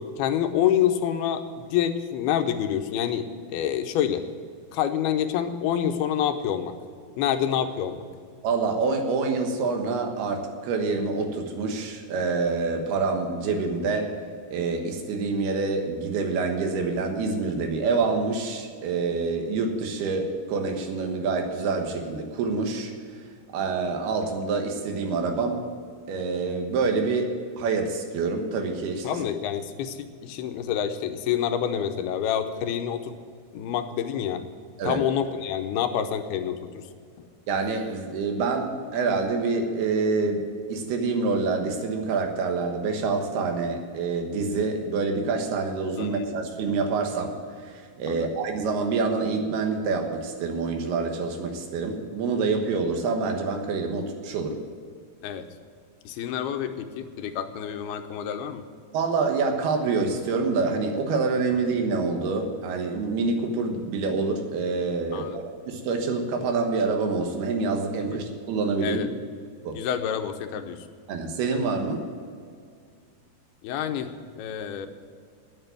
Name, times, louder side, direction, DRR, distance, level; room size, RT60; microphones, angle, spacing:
voice 1, 0.0-4.2 4.7-6.7 7.2-8.0 29.0-33.2 33.5-34.4 34.8-36.8 46.0-46.4 48.1-48.3 55.2-55.4 56.1-58.6 65.1-65.4 68.8-69.1 69.7-70.8 73.6-74.9, left 9 dB, 85° left, 8 dB, 2.7 m, -27 dB
voice 2, 8.4-14.1 14.5-22.9 23.5-25.6 26.1-29.2 34.8-35.0 37.5-54.6 58.9-69.0 69.6-69.8 71.1-72.0, right 4 dB, 80° right, 4 dB, 3.3 m, -27 dB
9.6 x 8.9 x 9.5 m, 2.2 s
omnidirectional pair, 4.5 m